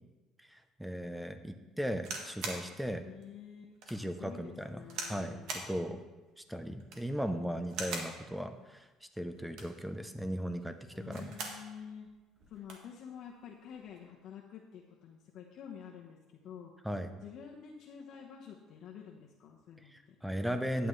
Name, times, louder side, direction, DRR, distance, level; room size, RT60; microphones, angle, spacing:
voice 1, 0.5-3.1 3.9-4.8 5.1-6.0 6.4-11.4 16.8-17.1 19.8-20.9, equal, 5° right, 9 dB, 0.7 m, -37 dB
sound 1, 2.0-2.7 3.2-3.3 3.8-4.0 4.9-5.2 5.5-5.7 6.7-7.1 7.7-8.2 9.4-9.8 10.9-11.6 12.0-12.1 12.4-12.9 13.7-14.0, right 3 dB, 70° right, 1.7 m, -41 dB
voice 2, 3.0-3.6 4.2-5.6 10.9-12.1 12.5-16.7 17.2-20.2, left 8 dB, 60° left, -2 dB, 1.1 m, -49 dB
11.0 x 9.2 x 3.2 m, 1.2 s
cardioid pair, 125°, 0 cm